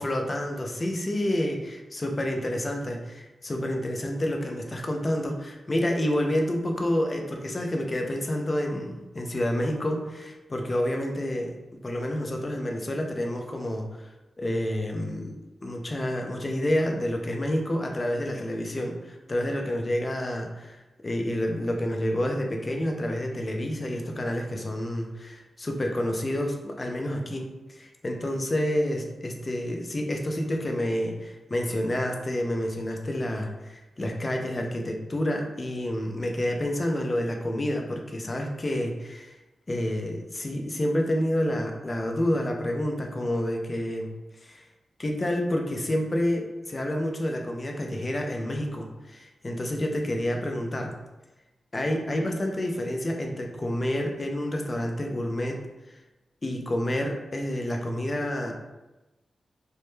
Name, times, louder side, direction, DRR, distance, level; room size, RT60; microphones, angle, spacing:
voice 1, 0.0-11.5 11.8-14.1 14.4-15.3 15.6-39.4 39.7-44.1 44.4-44.7 45.0-50.9 51.7-55.6 55.9-56.0 56.4-58.5, left 1 dB, 30° left, 2 dB, 0.3 m, -29 dB
2.1 x 2.0 x 3.0 m, 1.1 s
wide cardioid pair, 120°, 0 cm